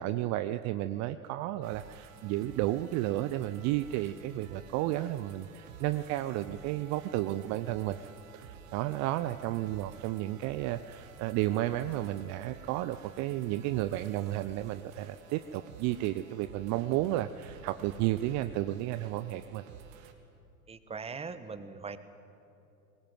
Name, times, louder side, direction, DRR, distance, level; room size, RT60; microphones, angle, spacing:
voice 1, 0.0-8.0 8.3-19.6, right 15 dB, 40° right, 12 dB, 0.7 m, -32 dB
sound 1, 1.6-20.1, right 7 dB, 60° right, 2.4 m, -52 dB
voice 2, 20.7-22.0, right 5 dB, 15° right, 11 dB, 1.3 m, -40 dB
21.0 x 19.5 x 9.4 m, 2.7 s
hypercardioid pair, 95°, 44 cm